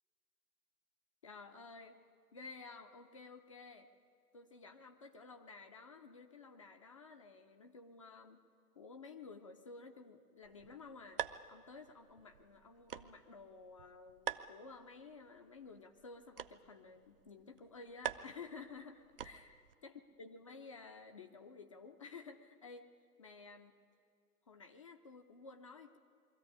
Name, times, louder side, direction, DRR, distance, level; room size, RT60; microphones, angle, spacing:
voice 1, 1.2-2.0 2.3-3.9 4.3-8.4 8.8-11.2 11.5-22.9 23.2-23.7 24.5-26.0, left 4 dB, 20° left, 6 dB, 0.5 m, -53 dB
sound 1, 10.4-19.7, right 9 dB, 40° right, 0.5 m, -48 dB
22.5 x 14.0 x 9.6 m, 2.3 s
figure-of-eight pair, 120°, 47 cm